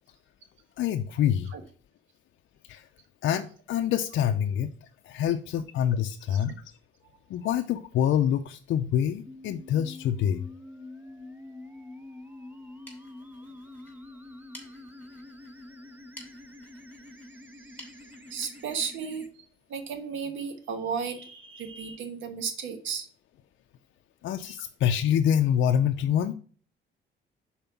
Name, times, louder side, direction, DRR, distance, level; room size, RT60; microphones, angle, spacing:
voice 1, 0.8-1.5 2.7-2.9 3.2-4.7 5.0-6.6 7.3-10.4 24.2-26.3, left 9 dB, 70° left, 6 dB, 0.5 m, -26 dB
sound 1, 9.3-19.3, left 2 dB, 10° right, 0.6 m, -46 dB
sound 2, 12.6-20.0, left 1 dB, 10° left, 3.0 m, -54 dB
voice 2, 17.6-17.9 18.3-19.3 19.7-23.1 24.5-24.6, right 6 dB, 80° right, 6 dB, 1.2 m, -34 dB
5.3 x 4.3 x 5.8 m, 0.43 s
cardioid pair, 90°, 20 cm